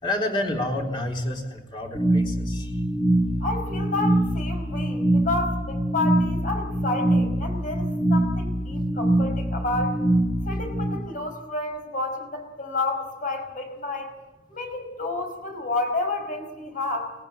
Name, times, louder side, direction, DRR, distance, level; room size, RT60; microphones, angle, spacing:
voice 1, 0.0-2.7, left 1 dB, 30° left, 1 dB, 3.8 m, -29 dB
sound 1, 1.9-11.0, right 1 dB, 5° left, 2.1 m, -24 dB
voice 2, 3.4-10.0 10.4-14.1 14.5-17.1, left 2 dB, 50° left, 5 dB, 5.1 m, -30 dB
20.0 x 19.5 x 8.9 m, 1.2 s
head